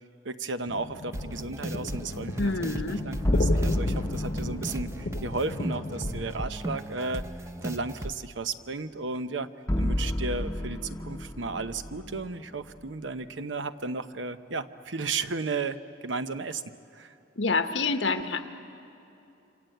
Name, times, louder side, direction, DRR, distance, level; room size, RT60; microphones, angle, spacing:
voice 1, 0.2-7.3 7.6-16.6 16.9-17.1, right 3 dB, 85° right, 10 dB, 0.9 m, -34 dB
sound 1, 0.7-6.3, left 2 dB, 55° left, 1.0 m, -35 dB
sound 2, 1.1-8.1, right 1 dB, 15° right, 0.7 m, -37 dB
voice 2, 2.4-3.0 17.4-18.5, left 3 dB, 90° left, 7 dB, 1.3 m, -27 dB
sound 3, 3.2-5.4 9.7-12.9, left 1 dB, 15° left, 0.8 m, -30 dB
27.5 x 26.0 x 7.9 m, 2.9 s
head